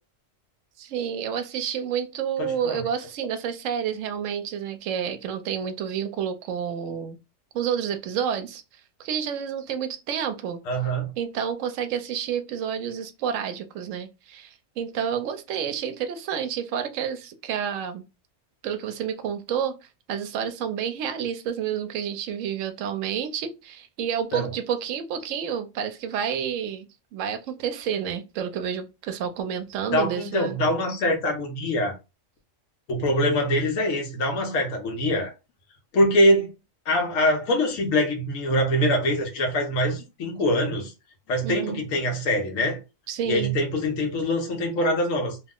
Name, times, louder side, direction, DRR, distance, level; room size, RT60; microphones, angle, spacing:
voice 1, 0.8-7.2 7.5-8.6 9.0-10.6 11.2-18.0 18.6-19.8 20.1-30.6 41.4-41.8 43.1-43.5, right 8 dB, 75° right, 0.9 m, -29 dB
voice 2, 2.4-2.8 10.7-11.1 24.3-24.5 29.9-31.9 32.9-35.3 35.9-36.5 36.9-40.9 41.3-42.8 43.3-45.4, equal, 85° left, 1.2 m, -24 dB
2.8 x 2.0 x 3.5 m
omnidirectional pair, 1.4 m